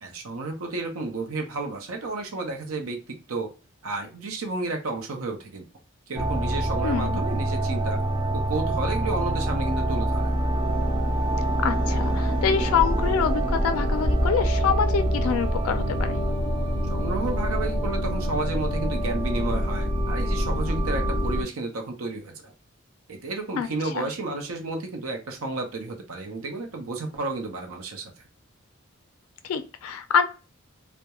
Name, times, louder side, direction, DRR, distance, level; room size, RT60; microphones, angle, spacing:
voice 1, 0.0-3.5 3.8-5.6 6.1-8.0 8.3-10.3 16.9-22.5 23.1-28.1, right 3 dB, 90° right, 3 dB, 0.6 m, -32 dB
sound 1, 6.2-21.4, right 1 dB, 20° right, 0.4 m, -25 dB
voice 2, 6.8-7.2 11.6-16.2 23.6-23.7 23.9-24.1 29.4-30.2, left 7 dB, 85° left, 9 dB, 0.3 m, -25 dB
2.3 x 2.1 x 2.8 m, 0.32 s
head